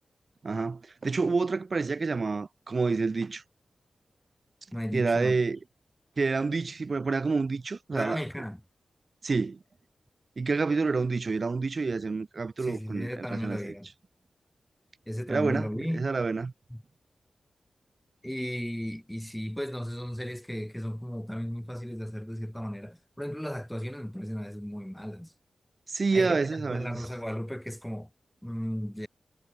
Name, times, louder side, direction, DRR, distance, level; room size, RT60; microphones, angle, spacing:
voice 1, 0.4-3.4 4.9-5.6 6.2-8.2 9.2-9.6 10.4-13.7 15.3-15.7 15.9-16.5 25.9-27.1, right 4 dB, 40° right, 1.1 m, -28 dB
voice 2, 4.7-5.4 7.9-8.6 12.6-13.9 15.1-16.1 16.7-16.8 18.2-25.3 26.1-28.1 28.4-29.1, equal, 5° left, 1.1 m, -35 dB
wide cardioid pair, 140°, 0 cm